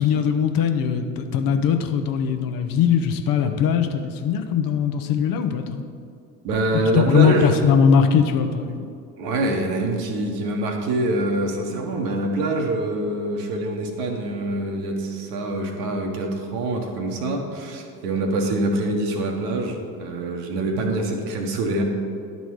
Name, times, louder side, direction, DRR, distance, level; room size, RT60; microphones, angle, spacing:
voice 1, 0.0-5.8 6.9-8.9, left 7 dB, 45° left, 6 dB, 0.7 m, -20 dB
voice 2, 6.4-7.6 9.2-21.8, right 2 dB, 65° right, 2 dB, 1.4 m, -25 dB
11.0 x 4.1 x 4.7 m, 2.4 s
hypercardioid pair, 70°, 50 cm